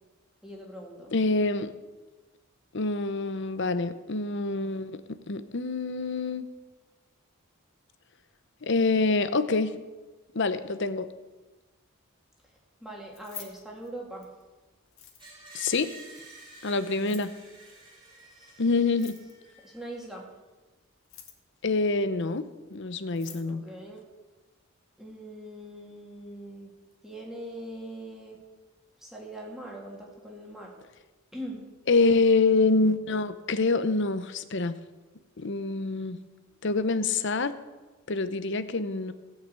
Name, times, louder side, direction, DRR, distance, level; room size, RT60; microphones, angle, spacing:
voice 1, 0.4-1.1 12.8-14.3 16.9-17.2 18.1-18.6 19.6-20.3 23.2-24.0 25.0-26.7 27.0-28.4 29.0-30.7 31.3-31.6, right 1 dB, ahead, -2 dB, 2.6 m, -42 dB
voice 2, 1.1-1.7 2.7-5.0 5.3-6.5 8.6-9.8 10.3-11.1 15.5-15.9 16.6-17.3 18.6-19.2 21.6-23.6 31.9-34.8 35.4-36.2 36.6-37.5 38.1-39.1, left 3 dB, 55° left, 12 dB, 0.8 m, -26 dB
Keys jangling, 13.0-14.4 14.9-15.5 16.9-17.4 18.9-19.5 20.9-21.6 22.7-22.8 23.0-23.5, left 9 dB, 70° left, 2.0 m, -47 dB
Screech, 15.2-20.2, right 2 dB, 20° right, 4.0 m, -50 dB
17.0 x 5.7 x 8.2 m, 1.2 s
head